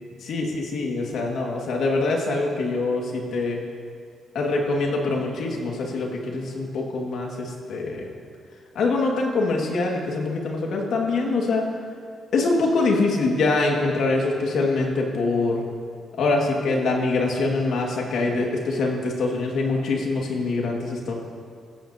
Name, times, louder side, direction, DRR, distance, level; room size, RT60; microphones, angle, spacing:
voice 1, 0.2-3.6 4.3-8.1 8.7-11.7 12.3-15.6 16.2-21.1, left 3 dB, 70° left, 0 dB, 2.2 m, -24 dB
16.0 x 15.0 x 3.0 m, 2.2 s
cardioid pair, 115°, 0 cm